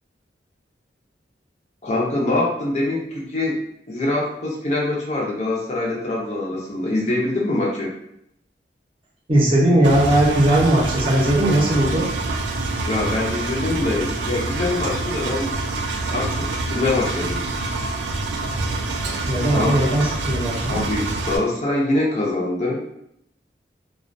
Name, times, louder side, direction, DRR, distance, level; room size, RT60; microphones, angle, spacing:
voice 1, 1.8-3.6 3.9-7.9 12.9-15.5 16.1-17.5 19.5-19.7 20.7-22.8, left 2 dB, 40° left, -3 dB, 0.5 m, -24 dB
voice 2, 9.3-12.1 19.3-20.8, right 1 dB, 30° right, -5 dB, 0.6 m, -18 dB
Engine, 9.8-21.4, right 2 dB, 85° right, 0.3 m, -26 dB
2.3 x 2.1 x 2.5 m, 0.75 s
head